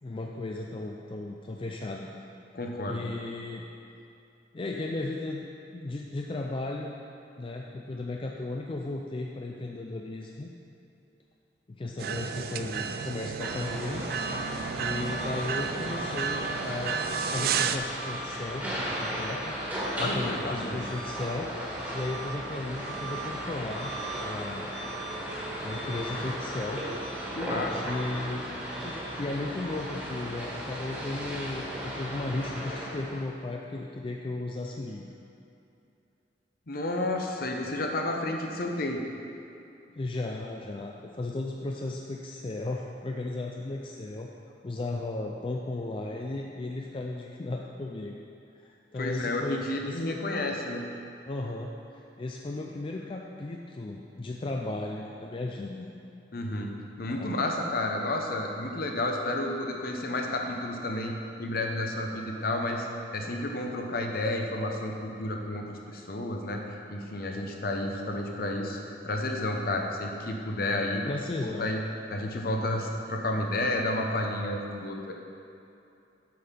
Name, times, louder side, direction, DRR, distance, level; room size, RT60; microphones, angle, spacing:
voice 1, 0.0-2.1 2.9-3.6 4.5-5.5 5.7-7.0 7.4-10.5 11.7-14.0 14.8-17.0 17.3-19.6 20.0-21.5 21.9-24.7 25.6-26.8 27.8-28.5 28.8-35.2 39.9-44.3 44.6-48.2 48.6-50.2 51.3-55.9 57.1-57.3 71.1-71.7, left 2 dB, 30° left, 0 dB, 0.4 m, -35 dB
voice 2, 2.5-3.1 20.0-20.9 27.3-27.8 36.7-39.0 49.0-50.8 56.3-61.1 61.4-62.9 63.1-66.6 66.9-71.0 71.4-71.8 72.1-75.1, left 1 dB, 55° left, 2 dB, 0.8 m, -31 dB
sound 1, 12.0-17.8, right 7 dB, 55° right, 0.3 m, -32 dB
sound 2, 13.4-33.2, right 1 dB, 10° right, 1.7 m, -35 dB
7.7 x 5.4 x 5.8 m, 2.7 s
head